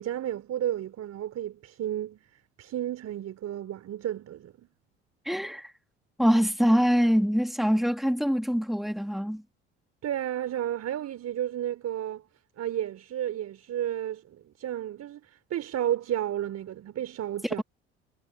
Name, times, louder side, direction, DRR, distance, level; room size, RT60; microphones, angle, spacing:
voice 1, 0.0-4.7 10.0-12.2 12.6-17.6, right 11 dB, 50° right, 4.8 m, -32 dB
voice 2, 5.3-5.7 6.2-9.4 17.4-17.6, equal, ahead, 3.8 m, -24 dB
hypercardioid pair, 60°, 33 cm